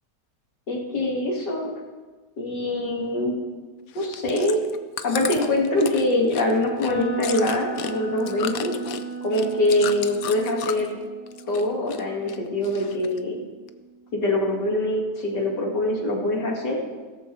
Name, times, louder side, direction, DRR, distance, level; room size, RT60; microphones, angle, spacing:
voice 1, 0.7-1.7 2.4-3.3 3.9-4.6 5.0-8.7 9.2-11.0 11.5-13.4 14.1-16.8, left 1 dB, 80° left, -1 dB, 2.8 m, -24 dB
Chewing mastication, 3.9-11.0 11.3-12.0 12.3-13.2 13.7-13.8, left 9 dB, 65° left, 1.0 m, -34 dB
sound 1, 6.9-14.8, right 5 dB, 25° left, 1.6 m, -36 dB
16.5 x 14.0 x 3.3 m, 1.3 s
omnidirectional pair, 1.8 m